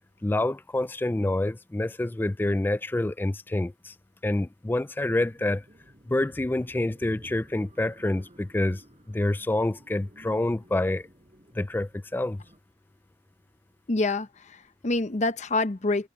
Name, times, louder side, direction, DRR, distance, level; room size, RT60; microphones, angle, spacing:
voice 1, 0.2-3.9 4.2-5.6 6.1-8.8 9.1-11.1 11.5-12.4, left 1 dB, 10° left, 0.3 m, -27 dB
sound 1, 5.1-12.6, equal, 35° right, 5.0 m, -53 dB
voice 2, 13.9-16.1, left 2 dB, 40° left, 0.8 m, -27 dB
head